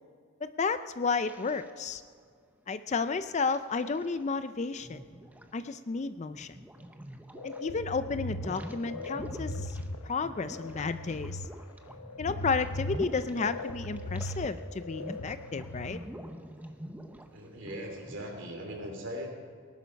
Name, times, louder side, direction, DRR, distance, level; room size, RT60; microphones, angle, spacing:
voice 1, 0.4-2.0 2.7-5.0 5.5-6.6 7.4-9.8 10.0-11.4 12.2-16.0, left 4 dB, 30° left, 12 dB, 0.4 m, -32 dB
sound 1, 1.2-2.3 3.1-4.4 4.8-7.7 8.0-14.6 14.9-18.3, equal, 5° right, 0.7 m, -46 dB
sound 2, 7.4-16.0, left 1 dB, 80° left, 0.8 m, -39 dB
voice 2, 17.3-19.3, equal, 55° right, 2 dB, 2.9 m, -39 dB
19.0 x 11.5 x 5.2 m, 2.1 s
head